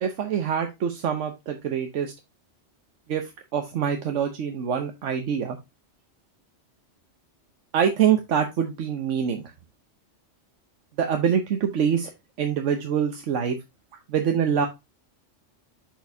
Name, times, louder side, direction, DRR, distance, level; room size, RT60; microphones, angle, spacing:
voice 1, 0.0-2.1 3.1-5.6 7.7-9.4 11.0-12.1 12.4-13.6 14.1-14.7, right 8 dB, 85° right, 5 dB, 1.2 m, -25 dB
6.3 x 6.1 x 2.7 m, 0.23 s
omnidirectional pair, 1.2 m